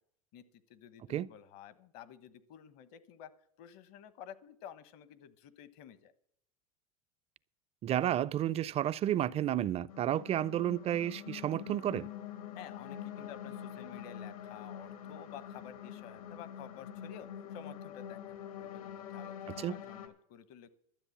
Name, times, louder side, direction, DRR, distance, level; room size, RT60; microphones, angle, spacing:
voice 1, 0.3-3.3 3.6-6.1 12.6-20.7, left 9 dB, 60° left, 1.1 m, -52 dB
voice 2, 7.8-12.1 19.6-19.7, right 11 dB, 35° right, 0.5 m, -31 dB
sound 1, 9.9-20.1, left 9 dB, 80° left, 2.0 m, -45 dB
12.5 x 7.8 x 7.2 m
hypercardioid pair, 90°, 18 cm